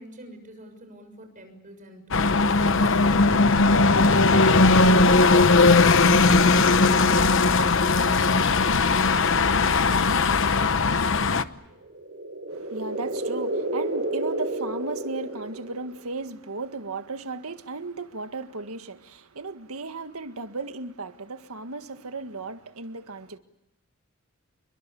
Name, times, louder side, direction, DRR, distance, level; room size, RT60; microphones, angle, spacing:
voice 1, 0.0-11.1, right 1 dB, 40° right, 6.8 m, -45 dB
sound 1, 2.1-11.4, left 3 dB, 60° left, 1.0 m, -19 dB
sound 2, 11.8-16.0, right 1 dB, 55° right, 6.4 m, -31 dB
voice 2, 12.5-23.4, right 3 dB, 90° right, 1.8 m, -35 dB
29.0 x 23.5 x 7.1 m
head